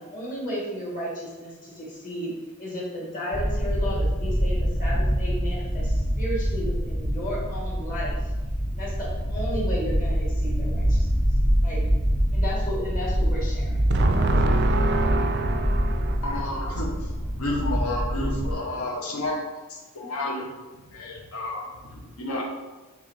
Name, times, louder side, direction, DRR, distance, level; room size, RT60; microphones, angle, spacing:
voice 1, 0.0-2.3 2.6-8.3 8.7-11.1 11.6-11.8 12.3-14.3, equal, 35° left, -5 dB, 1.5 m, -33 dB
sound 1, 3.3-18.5, equal, 15° left, 0.5 m, -25 dB
voice 2, 13.9-16.2, right 3 dB, 50° right, 6 dB, 0.3 m, -25 dB
voice 3, 16.2-16.9 17.4-19.4 19.7-20.5 20.9-21.6 21.9-22.4, left 1 dB, 80° left, 0 dB, 0.8 m, -30 dB
4.7 x 3.5 x 3.2 m, 1.2 s
head